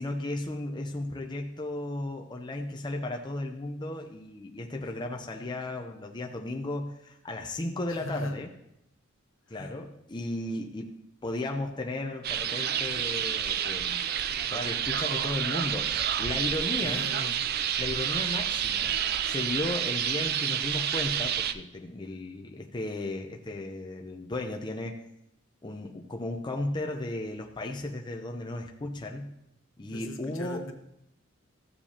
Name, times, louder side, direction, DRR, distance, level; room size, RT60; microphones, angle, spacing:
voice 1, 0.0-8.5 9.5-10.9 11.2-14.0 14.5-17.1 17.8-19.0 19.2-25.0 25.6-29.4 29.8-30.6, left 2 dB, 20° left, 2 dB, 0.6 m, -35 dB
voice 2, 7.9-8.5 9.5-9.7 16.8-17.4 29.9-30.7, left 1 dB, 70° left, 5 dB, 1.1 m, -39 dB
sound 1, 12.2-21.5, right 9 dB, 50° right, 0.4 m, -29 dB
14.5 x 7.3 x 2.8 m, 0.79 s
head